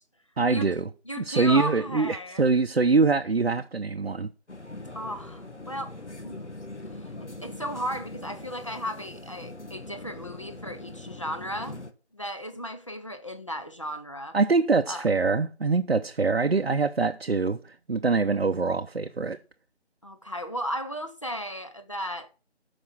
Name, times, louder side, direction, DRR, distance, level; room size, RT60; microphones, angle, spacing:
voice 1, 0.4-0.9 1.2-4.3 14.3-19.4, right 4 dB, 60° right, 0.8 m, -24 dB
voice 2, 1.1-2.4 4.9-6.5 7.0-11.8 12.1-14.4 14.9-15.1 20.0-22.3, equal, 30° left, 0.9 m, -35 dB
sound 1, 4.5-11.9, left 2 dB, 90° left, 1.7 m, -42 dB
14.0 x 5.2 x 6.0 m
figure-of-eight pair, 170°, 34 cm